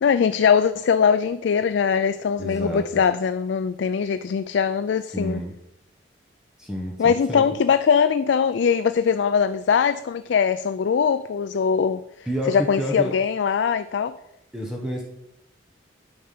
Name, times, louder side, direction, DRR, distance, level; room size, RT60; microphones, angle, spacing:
voice 1, 0.0-5.4 7.0-12.0 12.5-14.1, left 6 dB, 65° left, 11 dB, 0.3 m, -21 dB
voice 2, 2.4-3.0 5.1-5.6 6.6-7.4 12.3-13.1 14.5-15.0, equal, 5° right, -1 dB, 1.1 m, -29 dB
9.6 x 5.8 x 5.8 m, 0.84 s
head